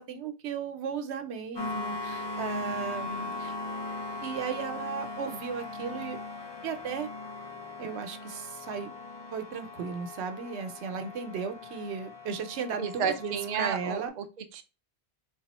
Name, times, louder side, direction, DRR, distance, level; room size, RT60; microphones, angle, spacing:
voice 1, 0.0-3.6 4.2-6.2 6.6-7.1 7.8-8.9 9.3-14.1, right 6 dB, 90° right, 7 dB, 0.9 m, -35 dB
sound 1, 1.5-14.1, left 2 dB, 35° left, 0.5 m, -39 dB
voice 2, 12.8-14.6, right 7 dB, 55° right, 7 dB, 0.5 m, -32 dB
3.4 x 2.4 x 4.1 m, 0.30 s
omnidirectional pair, 1.1 m